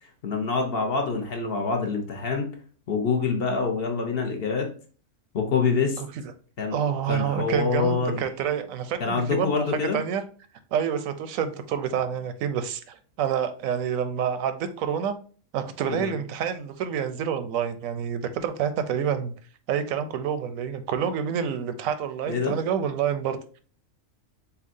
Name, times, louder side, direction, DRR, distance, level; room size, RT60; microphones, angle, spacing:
voice 1, 0.2-2.5 2.9-4.7 5.3-6.0 6.6-6.8 7.1-8.3 9.0-10.0 15.9-16.1 22.3-22.5, left 4 dB, 50° left, 3 dB, 0.9 m, -26 dB
voice 2, 6.7-9.5 9.9-10.2 10.7-15.2 15.5-19.3 19.7-23.6, right 8 dB, 85° right, 10 dB, 1.0 m, -28 dB
6.8 x 2.3 x 2.6 m, 0.41 s
omnidirectional pair, 1.4 m